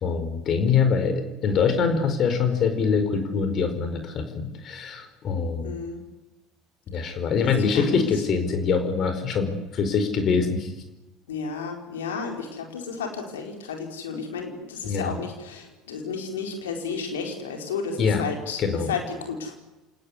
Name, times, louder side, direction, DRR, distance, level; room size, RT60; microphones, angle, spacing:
voice 1, 0.0-5.8 6.9-10.7 14.8-15.2 18.0-18.2 18.6-18.9, left 5 dB, 45° left, 8 dB, 4.6 m, -24 dB
voice 2, 5.6-6.0 7.1-7.2 7.5-8.1 11.3-18.6 18.9-19.6, left 5 dB, 75° left, 4 dB, 4.6 m, -32 dB
28.0 x 19.5 x 9.8 m, 1.0 s
figure-of-eight pair, 65°, 0 cm